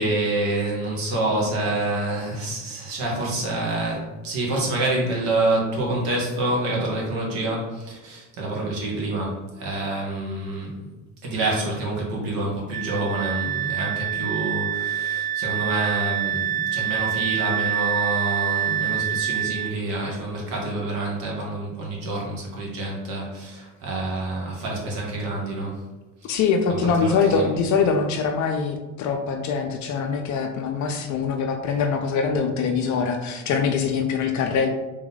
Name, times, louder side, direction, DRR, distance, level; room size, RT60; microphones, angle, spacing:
voice 1, 0.0-10.8 11.2-25.8 26.2-26.4 26.8-27.5, right 2 dB, 65° right, -2 dB, 1.5 m, -27 dB
Wind instrument woodwind instrument, 12.7-19.8, right 11 dB, 25° right, 0.3 m, -26 dB
voice 2, 26.2-34.7, left 5 dB, 50° left, 4 dB, 0.6 m, -23 dB
3.5 x 2.9 x 3.9 m, 1.1 s
hypercardioid pair, 70°, 38 cm